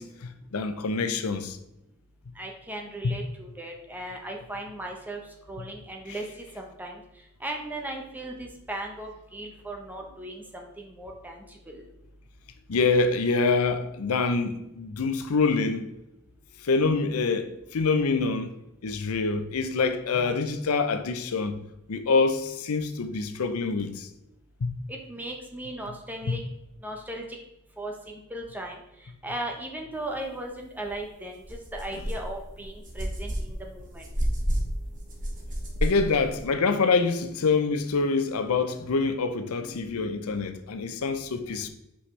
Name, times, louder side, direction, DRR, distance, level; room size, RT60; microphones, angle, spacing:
voice 1, 0.0-1.6 3.0-3.1 12.7-15.9 16.6-21.6 21.9-24.1 24.6-24.7 26.3-26.4 35.8-41.7, left 4 dB, 90° left, 0.6 m, -26 dB
voice 2, 2.4-5.2 5.5-6.2 6.5-7.0 7.4-11.8 24.9-26.4 26.8-27.2 27.8-28.8 29.2-34.1, right 1 dB, 10° right, 0.9 m, -37 dB
sound 1, 30.8-31.0 31.4-36.4, equal, 40° right, 1.3 m, -31 dB
5.6 x 5.4 x 3.3 m
head